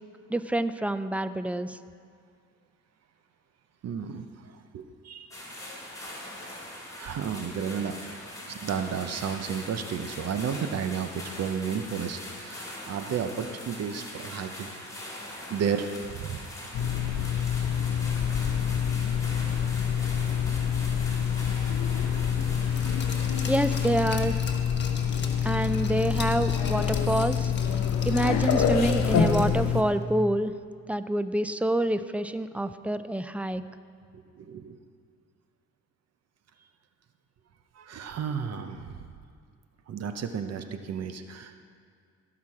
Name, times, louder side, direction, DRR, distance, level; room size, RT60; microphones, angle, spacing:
voice 1, 0.3-1.8 23.5-24.4 25.4-27.5 28.0-30.5 30.9-33.6, right 1 dB, 5° right, 12 dB, 0.4 m, -27 dB
voice 2, 3.8-5.4 6.4-6.5 7.0-8.0 8.4-14.7 15.5-16.5 23.0-23.5 34.1-34.8 37.7-39.0 39.9-41.6, right 7 dB, 55° right, 8 dB, 0.8 m, -33 dB
sound 1, 5.3-23.9, left 1 dB, 10° left, 3.1 m, -42 dB
sound 2, 16.7-29.8, left 7 dB, 65° left, 1.0 m, -26 dB
Glass, 22.8-29.7 30.0-30.1, left 4 dB, 35° left, 1.3 m, -41 dB
16.5 x 6.0 x 4.8 m, 2.2 s
cardioid pair, 90°, 30 cm